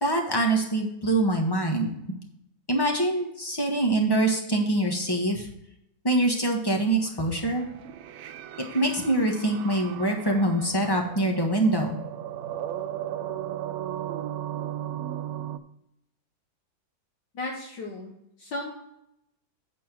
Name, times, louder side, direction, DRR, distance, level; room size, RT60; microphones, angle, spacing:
voice 1, 0.0-1.9 2.7-5.5 6.0-7.7 8.7-12.0, right 1 dB, 15° left, 2 dB, 1.1 m, -24 dB
sound 1, 7.1-15.6, right 11 dB, 85° right, 0.8 m, -36 dB
voice 2, 17.3-18.1 18.4-18.7, left 2 dB, 65° left, 0 dB, 1.7 m, -34 dB
8.4 x 4.4 x 5.8 m, 0.81 s
omnidirectional pair, 2.1 m